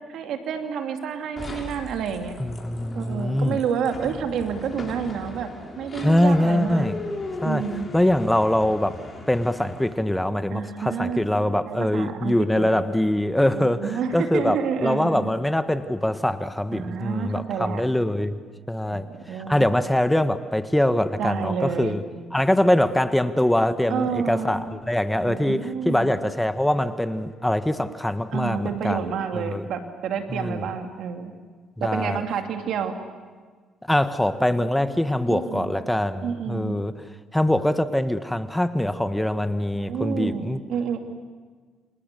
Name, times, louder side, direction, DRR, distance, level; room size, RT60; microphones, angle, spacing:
voice 1, 0.0-2.4 2.9-6.9 7.4-8.0 10.5-11.2 11.7-12.8 13.5-15.3 16.7-17.8 18.9-19.6 21.2-22.0 23.9-24.6 25.2-26.2 28.3-31.3 31.8-32.9 35.3-35.7 36.2-36.7 39.7-41.0, right 7 dB, 70° right, 5 dB, 2.7 m, -29 dB
sound 1, 1.4-10.1, left 2 dB, 35° left, 6.8 m, -38 dB
voice 2, 2.4-3.6 6.0-6.9 7.4-7.6 7.9-18.4 18.7-22.0 22.3-29.0 29.5-29.6 30.3-30.6 31.8-32.2 33.9-36.9 37.3-40.6, left 1 dB, 10° left, 10 dB, 1.5 m, -23 dB
29.0 x 27.5 x 6.9 m, 1.5 s
hypercardioid pair, 55°, 0 cm